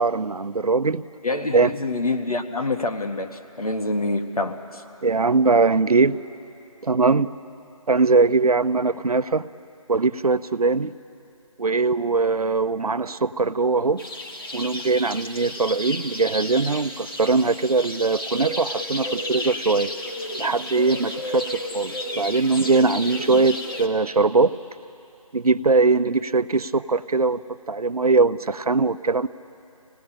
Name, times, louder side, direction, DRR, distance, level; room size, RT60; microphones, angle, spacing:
voice 1, 0.0-1.0 1.5-1.7 5.0-6.2 6.8-7.3 7.9-9.5 9.9-10.9 11.6-14.0 14.5-19.9 20.4-24.5 25.3-27.4 27.7-29.3, right 4 dB, 75° right, 12 dB, 0.8 m, -21 dB
voice 2, 1.2-4.8, left 2 dB, 75° left, 4 dB, 1.9 m, -26 dB
sound 1, 14.0-23.9, left 1 dB, 35° left, 1.7 m, -32 dB
25.5 x 18.5 x 8.8 m, 2.8 s
figure-of-eight pair, 175°, 19 cm